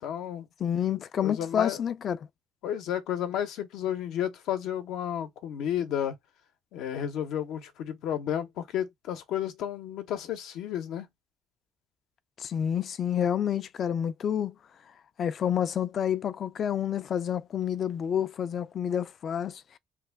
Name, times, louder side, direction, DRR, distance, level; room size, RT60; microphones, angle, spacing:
voice 1, 0.0-0.5 1.2-1.8 2.6-6.1 6.7-11.1, left 10 dB, 80° left, 0.7 m, -32 dB
voice 2, 0.6-2.2 12.4-14.5 15.2-19.8, left 9 dB, 50° left, 0.3 m, -29 dB
3.2 x 2.3 x 3.3 m
cardioid pair, 120°, 0 cm